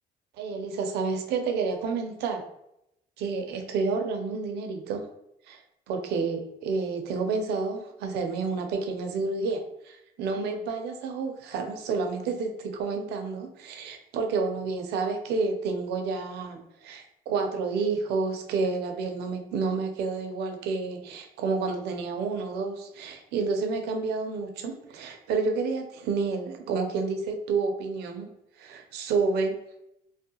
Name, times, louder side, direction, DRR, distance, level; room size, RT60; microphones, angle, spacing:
voice 1, 0.4-2.4 3.2-5.1 5.5-5.6 5.9-28.3 28.6-29.6, right 4 dB, 75° right, 5 dB, 0.5 m, -30 dB
2.6 x 2.1 x 2.8 m, 0.82 s
cardioid pair, 110°, 17 cm